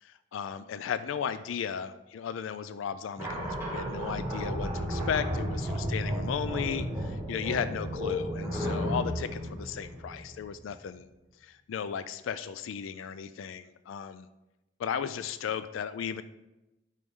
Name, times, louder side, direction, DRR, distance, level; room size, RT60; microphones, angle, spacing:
voice 1, 0.0-11.1 11.4-14.3 14.8-16.2, left 7 dB, 90° left, 13 dB, 0.3 m, -35 dB
sound 1, 3.2-10.6, equal, 10° right, 1.9 m, -33 dB
10.5 x 5.4 x 3.7 m, 1.0 s
head